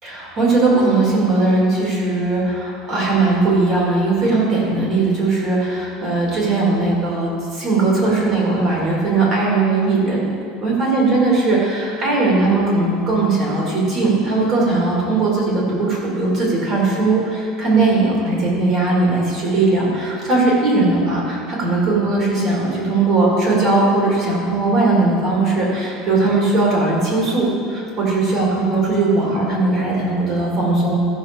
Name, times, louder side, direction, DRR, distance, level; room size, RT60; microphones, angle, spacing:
voice 1, 0.0-10.3 10.6-31.0, right 3 dB, 35° right, -3 dB, 3.0 m, -18 dB
14.0 x 6.3 x 5.4 m, 2.3 s
cardioid pair, 170°, 0 cm